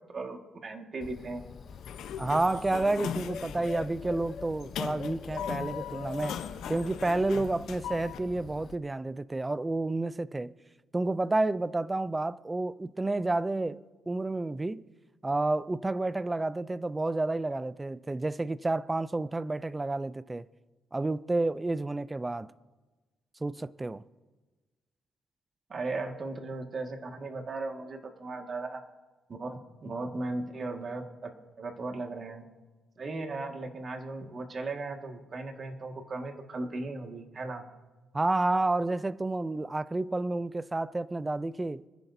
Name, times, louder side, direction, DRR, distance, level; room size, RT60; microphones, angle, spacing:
voice 1, 0.1-1.4 25.7-28.8 29.3-31.3 31.6-32.4 33.0-37.6, right 3 dB, 45° right, 1.8 m, -37 dB
Bird, 1.0-8.8, left 6 dB, 50° left, 0.7 m, -44 dB
Sliding door, 1.7-8.2, left 9 dB, 80° left, 0.8 m, -39 dB
voice 2, 2.2-6.4 6.7-10.5 10.9-14.8 15.2-20.4 20.9-22.5 23.4-24.0 38.1-41.8, right 2 dB, 20° right, 0.4 m, -30 dB
25.5 x 10.5 x 2.7 m
cardioid pair, 90°, 0 cm